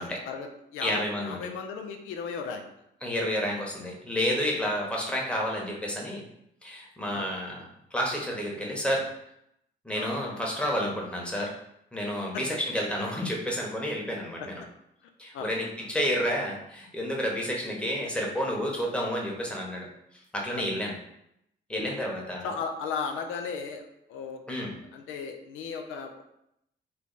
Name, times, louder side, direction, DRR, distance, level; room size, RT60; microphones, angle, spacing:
voice 1, 0.0-2.7 7.1-7.3 9.9-10.1 12.3-12.4 15.3-15.5 20.5-20.8 22.4-24.4 24.9-26.2, left 5 dB, 90° left, 5 dB, 0.5 m, -36 dB
voice 2, 0.8-1.4 3.0-6.2 6.6-9.1 9.8-11.5 11.9-14.6 15.2-19.9 20.3-20.9 21.7-22.5 24.5-24.7, equal, 5° left, -2 dB, 1.0 m, -30 dB
3.3 x 2.3 x 3.9 m, 0.78 s
cardioid pair, 90°, 20 cm